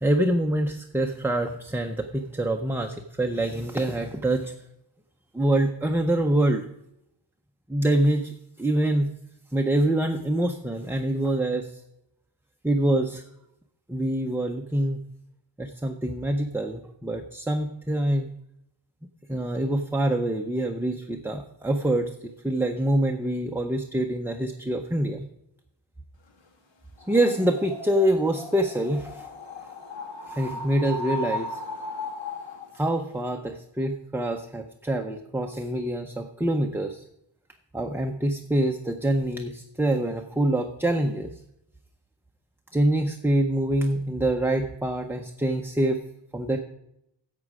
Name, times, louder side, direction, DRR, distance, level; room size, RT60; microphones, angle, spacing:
voice 1, 0.0-4.5 5.3-6.6 7.7-9.1 9.5-11.8 12.6-13.2 13.9-15.1 15.6-18.3 19.3-25.2 27.1-29.3 30.3-31.6 32.7-37.0 37.7-41.3 42.7-46.0 46.3-46.6, right 1 dB, 5° right, 3 dB, 0.5 m, -25 dB
sound 1, 27.0-32.8, left 2 dB, 65° left, 1.7 m, -36 dB
11.0 x 7.5 x 4.8 m, 0.81 s
wide cardioid pair, 135°, 48 cm